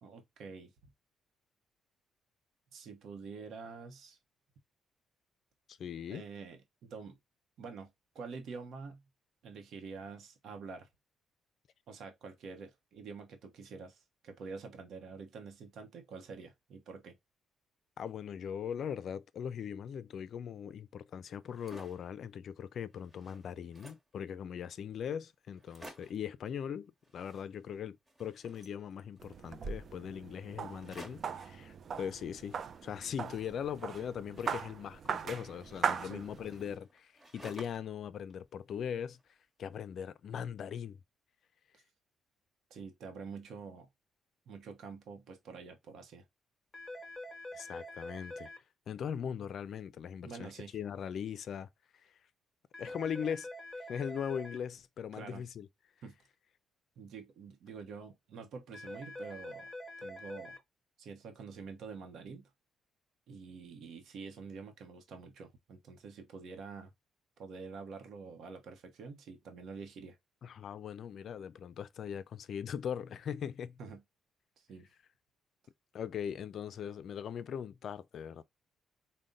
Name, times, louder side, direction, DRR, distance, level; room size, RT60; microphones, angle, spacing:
voice 1, 0.0-0.7 2.7-4.2 6.1-7.2 7.6-7.9 8.1-9.0 9.4-10.9 11.9-17.2 36.0-36.3 41.7-41.8 42.7-43.9 44.5-46.2 50.2-50.8 55.1-55.4 56.0-56.2 57.0-59.7 60.0-60.6 61.0-62.5 63.3-66.9 67.4-70.2 73.8-74.0 74.6-74.9, right 5 dB, 70° right, 0.8 m, -47 dB
voice 2, 5.7-6.2 18.0-32.6 32.8-39.2 39.6-41.0 47.5-48.5 48.9-50.5 50.7-51.7 52.8-53.5 53.8-55.7 70.4-73.8 75.9-78.4, left 8 dB, 60° left, 0.4 m, -40 dB
sound 1, 21.4-22.1 22.6-22.7 22.9-24.2 24.8-24.9 25.1-25.2 25.5-26.3 27.0-27.8 28.1-29.4 30.7-31.4 32.4-34.9 35.6-38.0 38.3-39.2, right 1 dB, 20° right, 1.2 m, -54 dB
sound 2, 29.2-36.8, right 6 dB, 50° right, 0.4 m, -39 dB
sound 3, 46.7-48.6 52.7-54.6 58.7-60.6, left 1 dB, 20° left, 1.0 m, -45 dB
3.8 x 2.1 x 3.7 m
cardioid pair, 90°, 0 cm